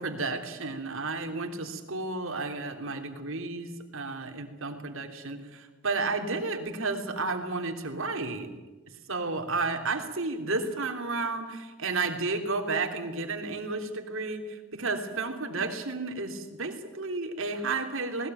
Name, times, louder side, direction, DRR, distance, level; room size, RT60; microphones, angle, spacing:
voice 1, 0.0-8.5 9.1-18.3, right 3 dB, 65° right, 5 dB, 3.2 m, -32 dB
20.0 x 19.5 x 9.2 m, 1.2 s
head